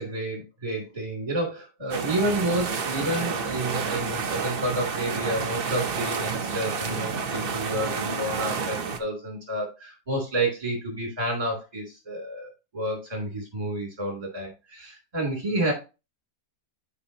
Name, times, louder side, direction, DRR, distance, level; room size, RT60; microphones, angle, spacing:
voice 1, 0.0-15.7, right 1 dB, 25° right, 3.0 m, -30 dB
sound 1, 1.9-9.0, right 5 dB, 45° right, 0.9 m, -30 dB
11.5 x 5.1 x 2.7 m
omnidirectional pair, 1.7 m